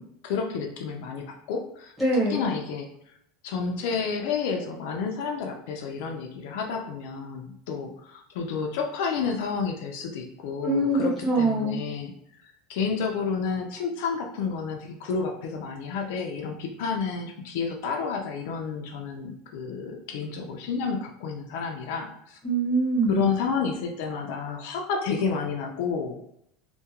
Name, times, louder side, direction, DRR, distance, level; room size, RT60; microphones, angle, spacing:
voice 1, 0.0-1.9 2.3-2.9 3.4-12.1 12.7-22.4 23.1-26.2, left 5 dB, 65° left, 2 dB, 0.4 m, -30 dB
voice 2, 2.0-2.5 10.6-11.8 22.4-23.3, right 2 dB, ahead, -5 dB, 1.0 m, -24 dB
2.3 x 2.1 x 2.8 m, 0.72 s
supercardioid pair, 160°, 0 cm